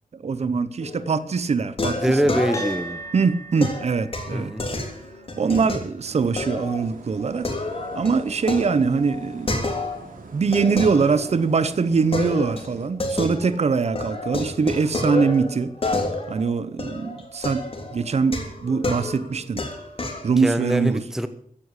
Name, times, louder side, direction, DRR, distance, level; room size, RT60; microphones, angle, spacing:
voice 1, 0.1-2.4 3.1-4.5 5.4-7.6 7.9-9.7 10.3-15.7 16.3-17.7 17.9-19.6 20.2-21.0, right 5 dB, 50° right, 0.9 m, -23 dB
sound 1, 0.8-1.2 1.8-3.0 3.6-5.8 6.4-6.8 7.2-10.1 10.5-11.6 12.1-13.7 14.0-20.3, left 2 dB, 40° left, 3.4 m, -29 dB
voice 2, 2.0-3.0 4.3-4.7 20.4-21.3, equal, 5° right, 1.0 m, -23 dB
sound 2, 2.5-11.2, right 2 dB, 20° left, 4.8 m, -43 dB
sound 3, 6.0-12.9, right 4 dB, 75° right, 2.9 m, -44 dB
15.5 x 9.9 x 8.2 m
wide cardioid pair, 165°, 14 cm